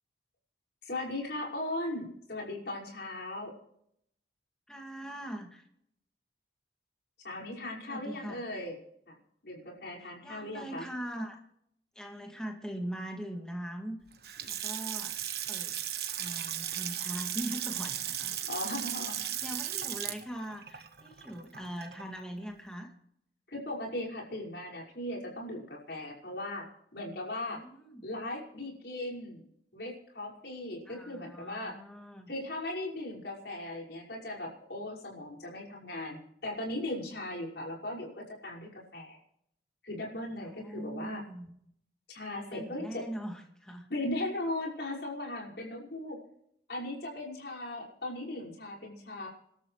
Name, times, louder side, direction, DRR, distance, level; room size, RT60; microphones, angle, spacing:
voice 1, 0.8-3.5 7.2-8.8 9.1-9.2 9.4-10.9 18.5-19.2 23.5-26.7 26.9-27.6 28.0-31.8 32.3-39.2 39.8-41.2 42.1-43.0 43.9-46.2 46.7-49.3, left 1 dB, 70° left, -2 dB, 5.7 m, -38 dB
voice 2, 4.7-5.7 7.9-8.5 10.2-11.4 12.0-14.0 14.5-15.2 15.5-15.7 16.2-18.4 19.1-22.9 27.5-28.1 30.9-32.3 40.4-41.5 42.5-43.9, right 1 dB, 5° left, 2 dB, 2.3 m, -41 dB
Water tap faucet / Sink (filling or washing) / Splash splatter, 14.1-22.2, right 11 dB, 60° right, 1.5 m, -36 dB
28.5 x 12.5 x 3.2 m, 0.74 s
head